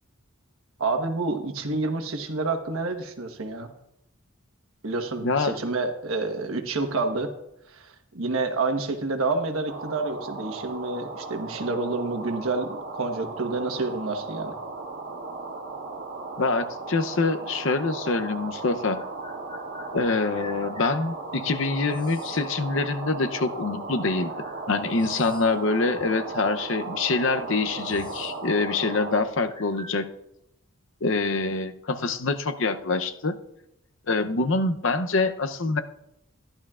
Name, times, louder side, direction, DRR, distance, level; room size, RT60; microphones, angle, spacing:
voice 1, 0.8-3.7 4.8-7.3 7.7-14.5, right 3 dB, 80° right, 6 dB, 1.3 m, -28 dB
voice 2, 5.2-5.6 16.4-19.0 19.9-24.3 24.7-30.1 31.0-33.4 34.1-35.8, left 3 dB, 60° left, 8 dB, 0.7 m, -25 dB
sound 1, 9.7-29.2, right 3 dB, 55° right, 1.5 m, -36 dB
sound 2, 18.9-21.0 21.9-22.4 23.5-23.6 24.3-25.7 26.0-26.1 26.9-27.0 27.3-28.4 28.7-28.9 29.5-30.0, left 2 dB, 20° left, 1.1 m, -45 dB
14.5 x 11.5 x 2.4 m, 0.84 s
head